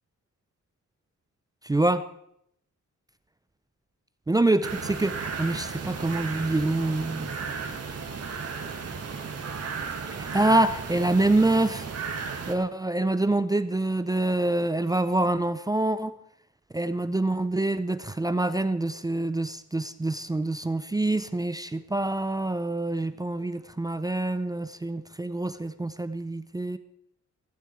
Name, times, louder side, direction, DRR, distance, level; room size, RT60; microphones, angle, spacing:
voice 1, 1.6-2.0 4.3-7.4 10.1-11.9 12.5-16.1 16.7-26.8, right 2 dB, 10° right, 12 dB, 0.5 m, -26 dB
sound 1, 4.6-12.5, right 5 dB, 50° right, 2.0 m, -34 dB
16.0 x 15.5 x 4.5 m, 0.73 s
wide cardioid pair, 175°, 31 cm